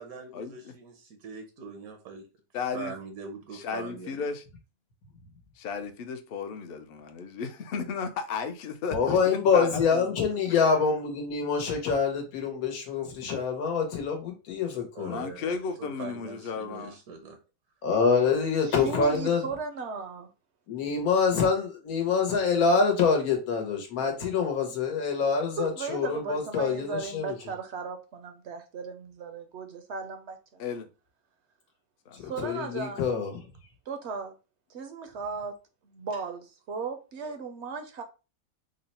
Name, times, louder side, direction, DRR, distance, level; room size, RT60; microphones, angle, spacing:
voice 1, 0.0-2.3 2.7-4.3 14.9-17.4, right 5 dB, 85° right, 1.2 m, -42 dB
voice 2, 2.5-2.9 3.5-4.4 5.6-10.1 10.5-10.6 15.1-17.0 30.6-30.9 32.1-32.3, left 5 dB, 60° left, 0.6 m, -34 dB
voice 3, 8.9-15.2 17.8-19.4 20.7-27.3 32.4-33.3, left 5 dB, 90° left, 1.3 m, -26 dB
voice 4, 18.6-20.3 25.6-30.6 32.2-33.0 33.9-34.4 34.7-35.6 35.8-38.0, right 4 dB, 65° right, 0.7 m, -36 dB
3.7 x 2.1 x 4.0 m
omnidirectional pair, 1.5 m